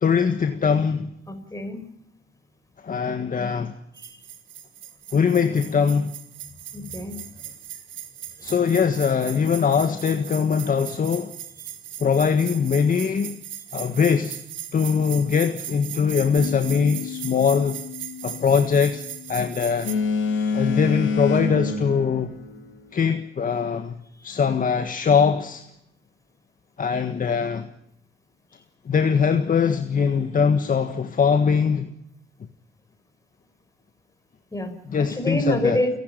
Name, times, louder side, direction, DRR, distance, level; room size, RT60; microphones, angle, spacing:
voice 1, 0.0-1.1 2.8-3.7 5.1-6.1 8.4-11.3 12.0-13.4 13.7-14.4 14.7-17.8 18.2-19.0 19.3-19.9 20.5-22.3 22.9-24.0 24.2-25.6 26.8-27.7 28.8-31.9 34.9-35.8, left 6 dB, 45° left, 1.6 m, -22 dB
voice 2, 1.3-1.9 4.0-4.2 6.7-7.2 24.2-24.4 34.5-34.8 35.1-36.0, left 1 dB, 15° left, 5.5 m, -27 dB
sound 1, 4.0-20.0, right 10 dB, 75° right, 2.5 m, -38 dB
sound 2, 16.4-21.5, left 8 dB, 35° right, 4.1 m, -38 dB
Boat Water vehicle, 19.8-23.0, left 4 dB, 75° left, 6.6 m, -26 dB
29.0 x 12.0 x 9.1 m
cardioid pair, 90°, 20 cm